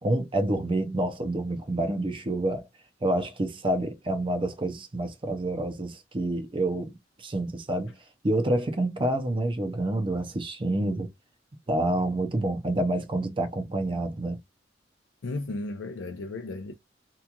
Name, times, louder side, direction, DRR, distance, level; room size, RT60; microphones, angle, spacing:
voice 1, 0.0-2.7 3.0-7.9 8.2-11.1 11.7-14.4, right 1 dB, 30° right, 0.5 m, -28 dB
voice 2, 15.2-16.7, left 2 dB, 90° left, 0.5 m, -34 dB
2.9 x 2.3 x 2.3 m
head